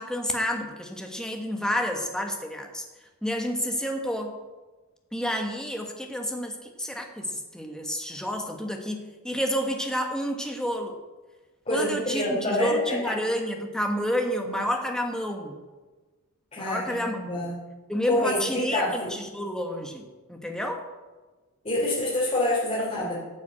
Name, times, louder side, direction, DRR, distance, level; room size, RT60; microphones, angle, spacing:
voice 1, 0.0-2.8 3.2-4.4 5.1-11.0 11.7-15.6 16.6-17.5 17.9-20.8, equal, 5° left, 3 dB, 1.3 m, -30 dB
voice 2, 11.6-12.9 14.4-14.5 16.5-17.6 18.1-19.1 21.6-23.1, left 1 dB, 30° left, -7 dB, 3.3 m, -27 dB
12.5 x 7.0 x 7.9 m, 1.3 s
head